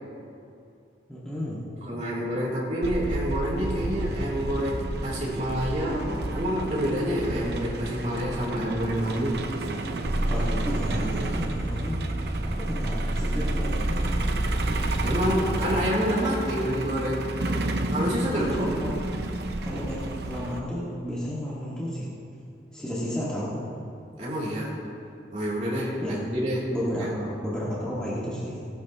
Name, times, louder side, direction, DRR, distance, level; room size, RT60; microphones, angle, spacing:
voice 1, 1.1-1.6 9.7-9.9 10.3-12.0 12.4-14.2 18.4-18.9 19.6-22.1 22.7-23.7 26.0-26.2 26.7-28.7, equal, 5° left, -9 dB, 2.0 m, -32 dB
voice 2, 1.8-9.4 15.0-17.3 17.9-18.7 24.2-24.8 25.3-26.7 27.0-27.1, equal, 40° right, -7 dB, 3.3 m, -28 dB
Truck, 2.8-20.6, right 2 dB, 65° right, 0.8 m, -32 dB
sound 1, 10.0-16.0, right 1 dB, 15° right, 0.4 m, -28 dB
19.0 x 11.5 x 3.1 m, 2.6 s
head